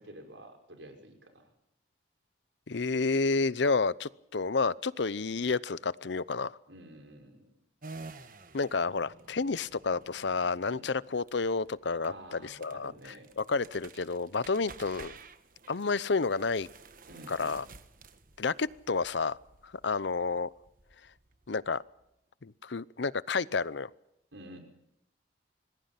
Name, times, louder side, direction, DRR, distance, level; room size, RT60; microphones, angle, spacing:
voice 1, 0.0-1.5 6.7-7.5 10.7-10.9 12.0-13.3 17.1-17.7 24.3-24.6, right 1 dB, 85° right, 5.7 m, -50 dB
voice 2, 2.7-6.6 8.5-15.1 15.7-16.7 17.3-17.6 18.4-19.4 19.8-20.5 21.5-21.8 22.4-23.9, left 4 dB, 75° left, 0.7 m, -30 dB
sound 1, 7.8-22.0, right 4 dB, 45° right, 1.5 m, -52 dB
26.0 x 20.5 x 5.8 m
head